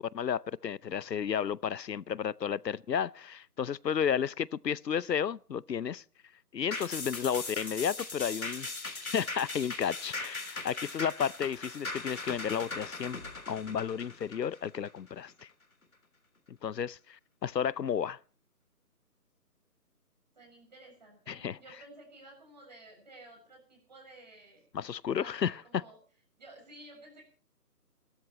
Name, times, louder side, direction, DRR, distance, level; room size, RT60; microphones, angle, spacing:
voice 1, 0.1-6.0 6.5-8.7 9.1-13.2 13.5-15.5 16.5-18.2 21.3-21.6 24.7-25.8, left 8 dB, 90° left, 0.8 m, -32 dB
sound 1, 6.7-15.4 15.8-15.9, left 3 dB, 60° left, 3.1 m, -39 dB
voice 2, 20.3-24.7 25.1-26.0 26.4-27.2, right 2 dB, 25° right, 7.0 m, -53 dB
30.0 x 13.0 x 3.1 m
figure-of-eight pair, 180°, 48 cm